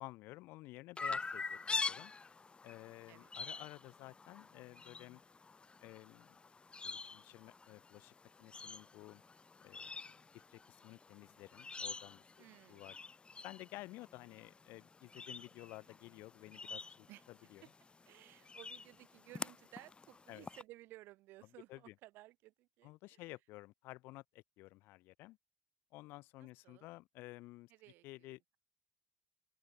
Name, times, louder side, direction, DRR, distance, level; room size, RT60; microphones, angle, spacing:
voice 1, 0.0-2.1 2.6-5.2 5.8-6.4 6.8-8.1 8.4-9.2 9.6-9.9 10.3-12.3 12.7-13.0 13.4-17.6 20.3-20.5 21.7-21.9 22.8-25.4 25.9-27.7 28.0-28.6, left 20 dB, 80° left, 2.6 m, -53 dB
Chirp tweet, 1.0-20.6, left 4 dB, 30° left, 0.6 m, -46 dB
voice 2, 3.1-3.7 12.4-13.0 17.1-17.2 17.6-17.7 18.1-23.2 26.4-26.9 27.7-28.3, right 18 dB, 80° right, 3.7 m, -58 dB
open air
hypercardioid pair, 60°, 4 cm